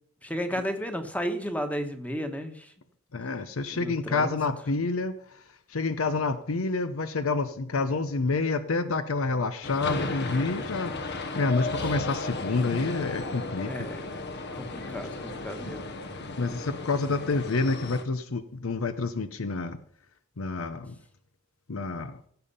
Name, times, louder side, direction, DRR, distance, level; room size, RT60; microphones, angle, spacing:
voice 1, 0.2-2.7 3.7-4.4 13.7-14.1 14.5-15.9, equal, 5° left, 7 dB, 1.3 m, -33 dB
voice 2, 3.1-5.4 5.7-13.9 16.4-19.8 20.4-21.0 21.7-22.2, left 3 dB, 85° left, 12 dB, 0.8 m, -28 dB
sound 1, 9.6-18.0, left 2 dB, 55° left, 1.2 m, -35 dB
16.5 x 7.0 x 5.5 m, 0.62 s
head